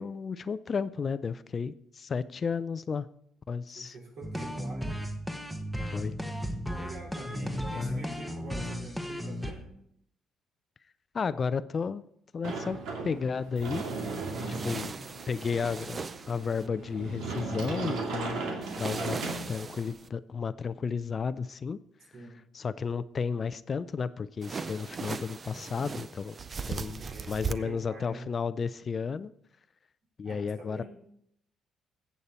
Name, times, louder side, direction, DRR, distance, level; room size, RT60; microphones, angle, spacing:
voice 1, 0.0-3.1 3.5-3.9 5.9-6.2 7.3-8.1 11.1-12.0 12.3-12.8 13.0-13.8 14.5-15.0 15.3-18.4 18.8-19.2 19.5-21.8 22.5-26.4 26.7-27.0 27.3-29.3 30.2-30.8, left 5 dB, 40° left, 16 dB, 0.4 m, -33 dB
voice 2, 3.7-4.9 6.7-9.7 22.1-22.4 26.9-28.3 30.2-30.8, right 2 dB, 70° right, -2 dB, 4.5 m, -45 dB
sound 1, 4.2-9.5, equal, 5° right, 1.1 m, -35 dB
Sliding door, 12.4-19.9, right 3 dB, 85° right, 2.2 m, -37 dB
sound 2, 13.6-16.7 18.6-20.1 24.4-27.5, right 5 dB, 35° right, 0.5 m, -38 dB
14.0 x 8.3 x 4.3 m, 0.72 s
cardioid pair, 110°, 0 cm